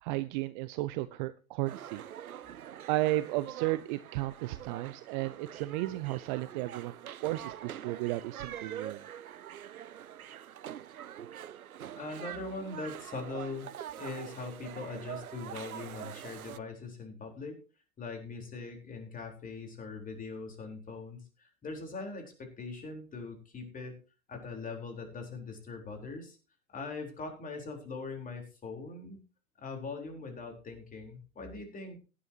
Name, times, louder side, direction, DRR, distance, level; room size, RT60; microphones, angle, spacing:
voice 1, 0.0-2.0 2.9-9.0, right 17 dB, 35° right, 15 dB, 0.6 m, -34 dB
sound 1, 1.7-16.6, right 10 dB, 85° right, 0.6 m, -45 dB
voice 2, 11.9-17.6 18.0-23.9 24.3-26.4 26.7-29.2 29.6-32.0, left 3 dB, 20° left, 3 dB, 4.1 m, -41 dB
16.5 x 11.5 x 2.9 m, 0.33 s
figure-of-eight pair, 105°, 42 cm